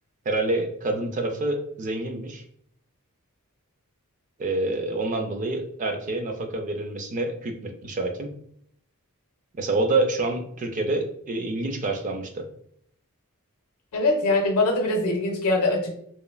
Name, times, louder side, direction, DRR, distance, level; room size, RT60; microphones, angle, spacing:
voice 1, 0.3-2.4 4.4-8.3 9.5-12.4, right 2 dB, 35° right, 5 dB, 0.4 m, -27 dB
voice 2, 13.9-16.0, left 2 dB, 75° left, 2 dB, 0.6 m, -23 dB
3.0 x 2.3 x 2.2 m, 0.68 s
head